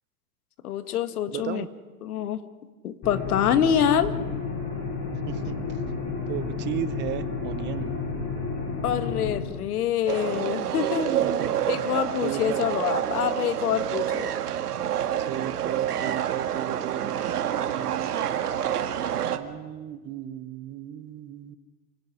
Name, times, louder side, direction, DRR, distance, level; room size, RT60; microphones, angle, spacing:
voice 1, 0.6-1.6 2.0-2.4 2.8-4.2 8.8-11.1 11.7-14.3 16.7-16.8, left 9 dB, 75° left, 11 dB, 1.9 m, -26 dB
voice 2, 1.3-1.7 5.3-5.8 6.3-8.0 11.2-11.5 12.2-12.8 15.2-18.2 18.5-18.8 19.3-21.5, right 12 dB, 25° right, 14 dB, 1.0 m, -35 dB
sound 1, 3.0-9.4, left 4 dB, 30° left, 6.8 m, -31 dB
sound 2, 10.1-19.4, right 10 dB, 85° right, 2.0 m, -28 dB
27.5 x 16.5 x 10.0 m, 1.4 s
hypercardioid pair, 140°, 45 cm